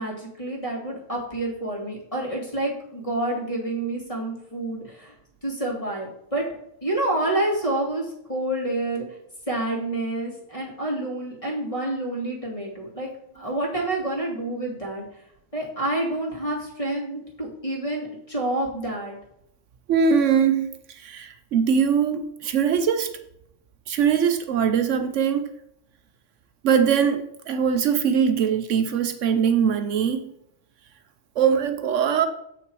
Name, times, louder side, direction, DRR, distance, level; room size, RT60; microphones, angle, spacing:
voice 1, 0.0-5.1 5.4-6.5 6.8-9.0 9.5-13.1 13.3-15.2 15.5-19.2, right 1 dB, 25° left, -3 dB, 2.4 m, -28 dB
voice 2, 19.9-20.7 21.0-23.1 23.9-25.4 26.6-30.2 31.4-32.3, right 7 dB, 75° right, 8 dB, 1.0 m, -21 dB
7.7 x 5.8 x 4.6 m, 0.75 s
omnidirectional pair, 1.3 m